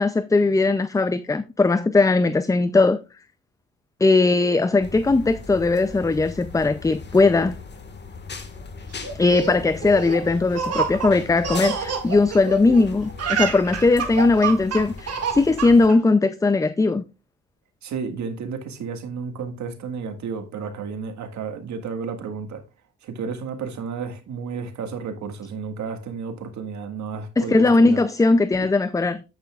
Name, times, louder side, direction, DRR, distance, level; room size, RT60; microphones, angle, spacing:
voice 1, 0.0-3.0 4.0-7.6 9.2-17.0 27.4-29.2, left 3 dB, 10° left, 0.4 m, -19 dB
sound 1, 4.8-15.9, left 4 dB, 35° left, 1.7 m, -39 dB
Laughter, 9.0-12.8 13.1-16.0, right 6 dB, 55° right, 2.1 m, -28 dB
voice 2, 17.8-22.6 23.0-28.0, right 5 dB, 70° right, 1.8 m, -32 dB
9.4 x 8.8 x 2.4 m
cardioid pair, 90°, 30 cm